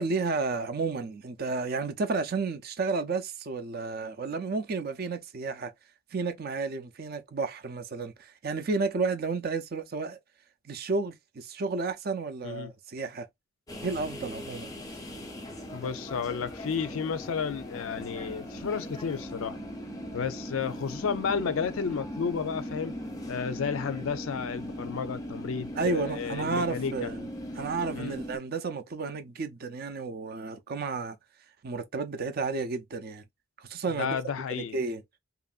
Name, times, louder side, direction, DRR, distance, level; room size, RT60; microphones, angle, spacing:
voice 1, 0.0-5.7 6.1-10.2 10.6-13.3 13.8-14.7 25.8-27.3 27.6-31.2 31.6-33.2 33.6-34.2 34.5-35.0, right 4 dB, 50° right, 0.5 m, -32 dB
sound 1, 13.7-28.4, equal, 15° left, 0.6 m, -39 dB
voice 2, 15.7-19.6 20.1-22.9 23.3-27.1 27.9-28.2 33.9-34.8, left 6 dB, 80° left, 0.4 m, -32 dB
2.9 x 2.5 x 2.3 m
head